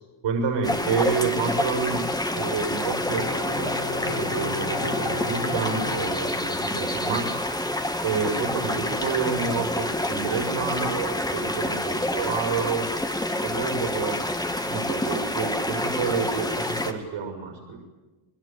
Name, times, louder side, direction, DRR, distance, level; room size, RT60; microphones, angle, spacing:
voice 1, 0.2-2.0 2.3-3.8 4.1-7.4 8.0-12.9 13.4-14.2 14.7-17.8, right 5 dB, 65° right, 2 dB, 6.3 m, -29 dB
sound 1, 0.6-16.9, left 1 dB, 10° left, 2.4 m, -28 dB
Bowed string instrument, 3.1-6.9 7.2-7.3, left 4 dB, 55° left, 5.1 m, -35 dB
29.5 x 20.5 x 9.0 m, 1.2 s
cardioid pair, 110°, 49 cm